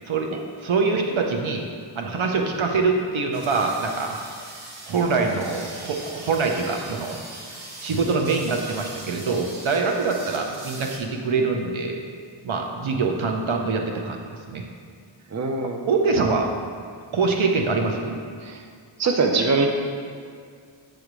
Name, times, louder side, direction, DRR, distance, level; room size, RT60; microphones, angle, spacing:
voice 1, 0.6-1.7 2.0-4.2 4.9-7.2 7.8-12.0 12.4-14.2 14.5-14.7 15.9-16.5 17.1-18.2, right 4 dB, 80° right, 2 dB, 0.8 m, -24 dB
sound 1, 3.3-11.0, right 2 dB, 50° right, 1.3 m, -41 dB
voice 2, 15.3-15.9 18.4-18.6 19.0-19.7, right 4 dB, 35° right, 3 dB, 0.7 m, -22 dB
7.6 x 3.5 x 6.1 m, 2.2 s
wide cardioid pair, 70°, 47 cm